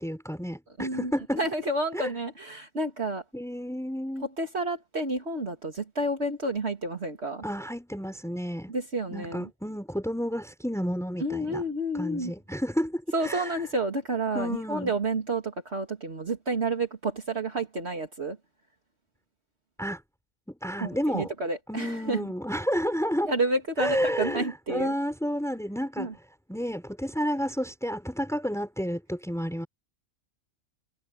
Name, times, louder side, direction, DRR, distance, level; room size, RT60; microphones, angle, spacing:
voice 1, 0.0-1.4 1.9-2.1 3.3-4.3 7.4-8.7 9.1-11.6 11.9-13.6 14.3-14.9 19.8-20.0 20.5-21.3 21.7-23.3 23.8-26.1 26.5-29.7, equal, ahead, 6.2 m, -31 dB
voice 2, 0.8-3.2 4.4-7.4 8.7-9.5 11.2-12.3 13.1-18.4 20.8-22.2 23.2-24.9 26.0-26.1, right 2 dB, 50° right, 2.9 m, -30 dB
omnidirectional pair, 1.4 m